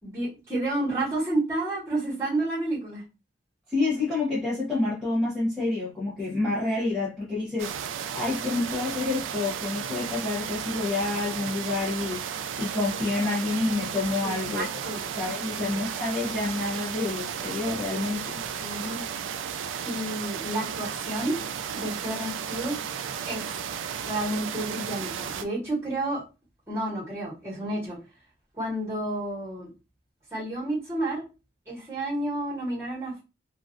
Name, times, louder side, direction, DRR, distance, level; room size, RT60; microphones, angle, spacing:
voice 1, 0.0-3.0 14.2-15.0 15.5-15.7 18.6-19.0 19.8-21.4 21.7-22.8 23.3-23.5 24.0-26.2 26.7-28.0 28.6-29.7 30.3-31.2 31.7-33.2, right 1 dB, 15° right, 1.7 m, -30 dB
voice 2, 3.7-7.7 8.1-12.3 12.6-14.8 15.1-18.4, left 3 dB, ahead, 1.0 m, -28 dB
sound 1, 7.6-25.4, right 8 dB, 85° right, 0.3 m, -34 dB
3.0 x 2.5 x 2.5 m
head